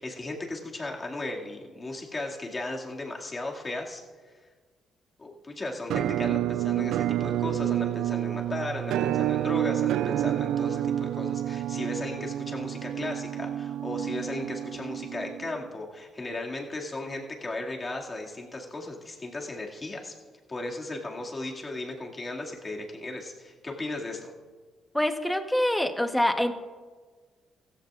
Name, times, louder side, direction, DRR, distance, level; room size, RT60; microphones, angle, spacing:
voice 1, 0.0-4.0 5.2-20.1 20.5-24.3, left 2 dB, 30° left, -1 dB, 2.3 m, -36 dB
Musical instrument, 5.9-15.7, right 12 dB, 85° right, 0.3 m, -29 dB
voice 2, 24.9-26.5, left 1 dB, 5° left, 7 dB, 1.1 m, -25 dB
16.0 x 15.0 x 2.5 m, 1.4 s
cardioid pair, 90°, 0 cm